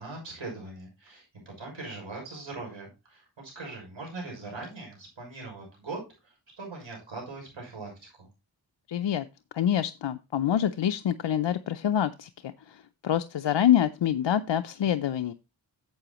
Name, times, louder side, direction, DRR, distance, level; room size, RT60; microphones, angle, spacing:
voice 1, 0.0-8.3, right 3 dB, 80° right, 0 dB, 6.4 m, -41 dB
voice 2, 8.9-9.3 9.5-15.3, left 10 dB, 70° left, 9 dB, 0.6 m, -26 dB
12.0 x 7.7 x 3.0 m, 0.27 s
wide cardioid pair, 60°, 45 cm